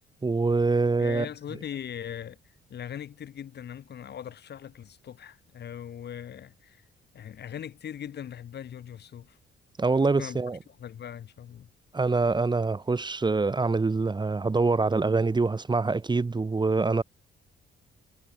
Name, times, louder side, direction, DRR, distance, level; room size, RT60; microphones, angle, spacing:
voice 1, 0.2-1.2 9.8-10.6 11.9-17.0, right 3 dB, 20° right, 1.3 m, -25 dB
voice 2, 1.0-2.4 2.7-6.9 7.1-9.4 10.0-10.4 10.7-11.7, left 9 dB, 55° left, 1.7 m, -40 dB
cardioid pair, 90°, 20 cm